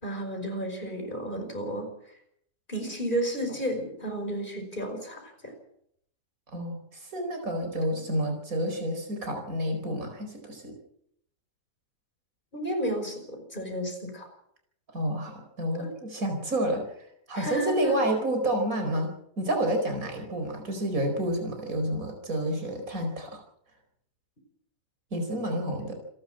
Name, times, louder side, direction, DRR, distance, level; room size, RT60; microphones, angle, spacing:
voice 1, 0.0-1.9 2.7-5.5 12.5-14.3 15.8-15.9 17.3-18.0, right 1 dB, 35° left, 4 dB, 5.7 m, -32 dB
voice 2, 6.5-10.7 14.9-16.8 17.3-23.4 25.1-25.9, right 1 dB, 75° right, 4 dB, 4.9 m, -29 dB
28.0 x 12.0 x 7.6 m, 0.71 s
omnidirectional pair, 1.5 m